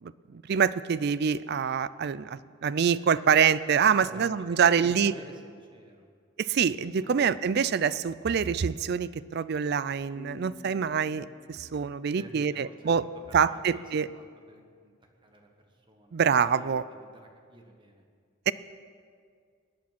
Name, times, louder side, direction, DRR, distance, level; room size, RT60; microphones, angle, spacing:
voice 1, 0.0-5.1 6.4-13.0 13.3-14.1 16.1-16.8 18.5-18.6, right 7 dB, 50° right, 17 dB, 0.4 m, -25 dB
voice 2, 4.7-6.1 7.0-7.2 12.2-12.9 13.3-13.8 14.1-14.9 15.2-16.2 16.5-16.7 17.0-18.0, right 1 dB, 25° right, 3 dB, 1.5 m, -50 dB
sound 1, 10.2-13.6, left 2 dB, 5° left, 3.1 m, -52 dB
21.0 x 8.7 x 6.0 m, 2.1 s
head